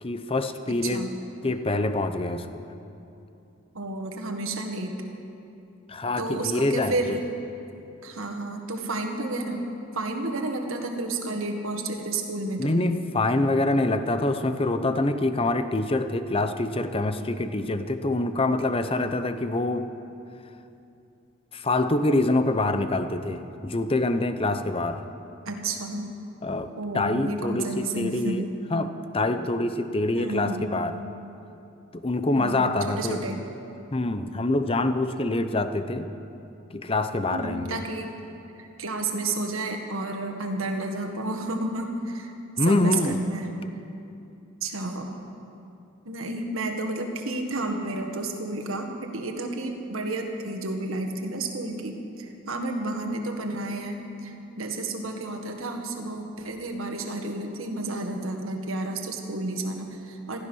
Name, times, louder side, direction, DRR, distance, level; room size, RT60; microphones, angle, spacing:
voice 1, 0.0-1.1 1.4-2.6 5.9-7.2 12.6-19.9 21.5-25.0 26.4-28.4 28.7-31.0 31.9-33.2 33.9-36.1 36.7-37.8 42.6-43.2, left 2 dB, 25° left, 10 dB, 0.7 m, -25 dB
voice 2, 0.7-1.1 3.7-4.9 6.2-7.2 8.0-9.6 9.9-12.8 25.4-26.1 26.8-28.5 30.1-30.7 32.3-33.4 37.3-38.1 38.5-42.3 42.6-43.5 44.6-45.1 46.0-60.4, right 2 dB, 70° right, 4 dB, 1.7 m, -31 dB
16.0 x 13.5 x 6.3 m, 2.7 s
head